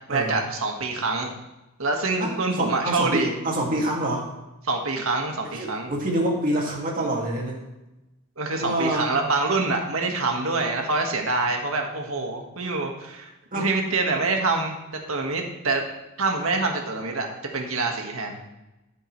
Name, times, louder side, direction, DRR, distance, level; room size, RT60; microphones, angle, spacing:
voice 1, 0.1-1.3 1.8-3.3 4.6-5.9 8.4-14.8 15.1-15.9 16.2-17.3 17.5-18.4, right 3 dB, 75° right, 2 dB, 1.7 m, -26 dB
voice 2, 2.6-4.2 5.5-7.6 8.6-9.1 13.5-13.7, right 1 dB, 40° right, -1 dB, 2.3 m, -26 dB
14.0 x 7.9 x 3.3 m, 0.98 s
head